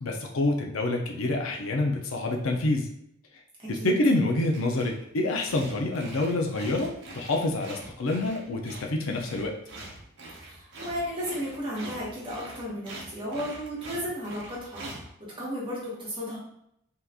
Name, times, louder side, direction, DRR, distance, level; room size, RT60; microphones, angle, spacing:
voice 1, 0.0-2.9 3.7-9.5, left 2 dB, 90° left, 1 dB, 0.6 m, -27 dB
voice 2, 3.6-4.0 10.3-15.0 15.4-16.4, equal, 25° right, -6 dB, 1.2 m, -34 dB
sound 1, 4.3-5.0 5.4-15.1, right 2 dB, 60° right, 0.7 m, -44 dB
2.9 x 2.4 x 3.5 m, 0.75 s
head